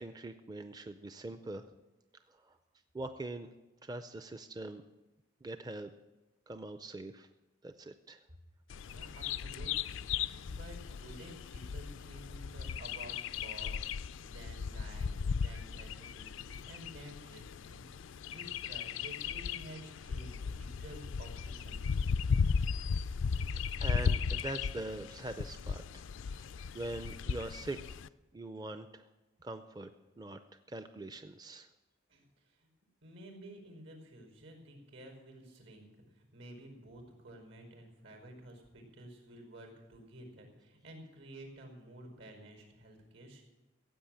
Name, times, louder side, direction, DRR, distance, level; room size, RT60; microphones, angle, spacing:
voice 1, 0.0-1.7 2.3-2.6 2.9-3.5 3.8-4.8 5.4-5.9 6.5-7.3 7.6-8.2 8.9-9.2 23.8-28.0 28.3-29.1 29.4-29.9 30.2-30.4 30.7-31.7, right 2 dB, 20° right, 9 dB, 0.4 m, -43 dB
Bird vocalization bird call bird song, 8.7-28.1, left 6 dB, 75° left, 0.4 m, -36 dB
voice 2, 8.8-13.2 13.4-22.3 32.1-32.7 33.0-43.4, right 1 dB, 80° right, 3 dB, 5.1 m, -52 dB
15.5 x 8.0 x 8.9 m, 1.1 s
head